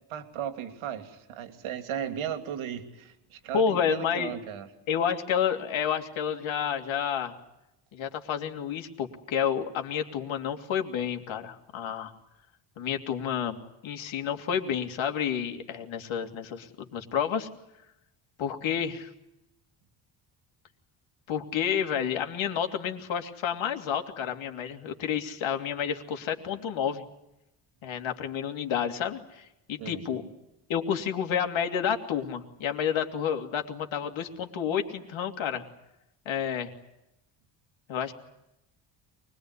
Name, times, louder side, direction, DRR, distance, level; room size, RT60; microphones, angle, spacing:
voice 1, 0.1-4.7 29.8-30.3, right 9 dB, 80° right, 7 dB, 3.0 m, -36 dB
voice 2, 3.5-4.3 4.9-7.3 7.9-12.1 12.8-13.6 13.8-17.5 18.4-19.1 21.3-27.0 27.8-30.2 30.7-35.6 36.2-36.7 37.9-38.1, left 8 dB, 70° left, 5 dB, 3.0 m, -30 dB
24.5 x 21.0 x 9.8 m, 0.88 s
cardioid pair, 90°, 48 cm